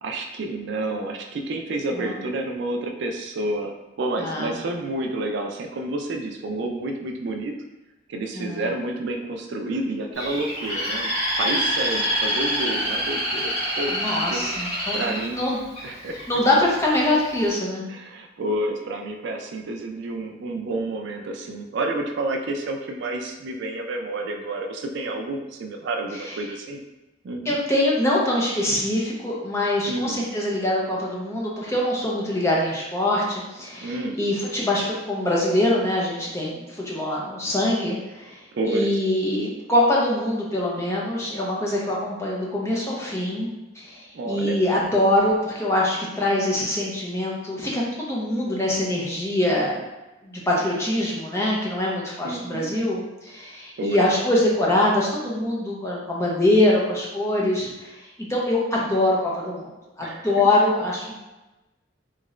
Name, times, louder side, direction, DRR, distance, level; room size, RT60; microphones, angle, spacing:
voice 1, 0.0-3.7 4.0-7.5 8.1-11.1 11.4-14.5 14.9-15.4 15.8-16.3 17.9-26.8 27.2-27.5 29.9-30.2 33.8-34.2 38.5-38.9 44.1-44.6 52.2-52.7 53.8-54.0 60.0-60.3, right 2 dB, 60° right, 3 dB, 0.3 m, -29 dB
voice 2, 4.2-4.6 8.3-8.7 13.9-15.0 15.3-15.6 15.9-17.9 26.1-26.4 27.4-43.5 43.8-49.8 50.2-59.7 60.0-61.1, left 1 dB, 15° left, -4 dB, 0.6 m, -24 dB
Bird, 10.2-16.2 16.8-17.2, equal, 35° left, 1.1 m, -26 dB
2.9 x 2.4 x 3.1 m, 1.0 s
head